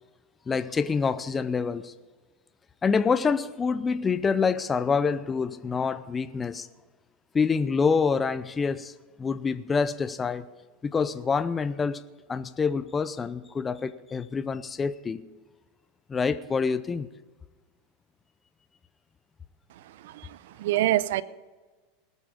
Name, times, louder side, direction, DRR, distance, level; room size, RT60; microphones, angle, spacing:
voice 1, 0.5-1.9 2.8-6.7 7.3-8.9 9.2-10.5 10.8-12.0 12.3-15.2 16.1-17.1, left 5 dB, 20° left, 0.6 m, -26 dB
voice 2, 19.7-21.2, right 14 dB, 75° right, 0.6 m, -27 dB
20.0 x 8.3 x 5.3 m
supercardioid pair, 125°, 0 cm